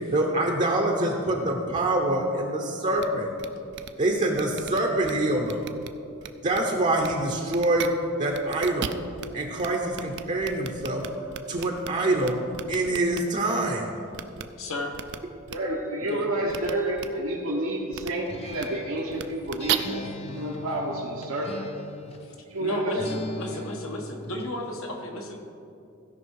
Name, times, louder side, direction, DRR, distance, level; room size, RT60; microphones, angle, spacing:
voice 1, 0.1-3.3 4.0-5.6 6.4-7.9 8.2-9.0 9.3-11.0 11.5-12.4 12.7-13.9, right 2 dB, 35° right, 1 dB, 0.8 m, -25 dB
sound 1, 3.0-3.1 3.4-3.5 3.7-3.9 4.3-5.1 5.4-5.9 6.2-6.6 7.0-7.1 7.5-7.9 8.3-9.3 9.6-9.7 9.9-11.9 12.2-13.2 14.1-14.4 14.9-15.2 15.5-15.6 16.5-16.7 17.0-17.1 17.9-18.1 18.5-18.6 19.1-19.7, right 10 dB, 55° right, 0.4 m, -33 dB
voice 2, 14.6-14.9 16.1-16.2 22.2-22.3 22.6-25.4, left 1 dB, 75° left, 2 dB, 1.3 m, -34 dB
voice 3, 15.5-21.7 22.5-23.0, right 1 dB, 80° right, -5 dB, 1.2 m, -29 dB
Acoustic guitar, 18.3-22.4 23.0-24.5, left 2 dB, 30° left, 0.6 m, -39 dB
15.5 x 5.4 x 4.7 m, 2.6 s
head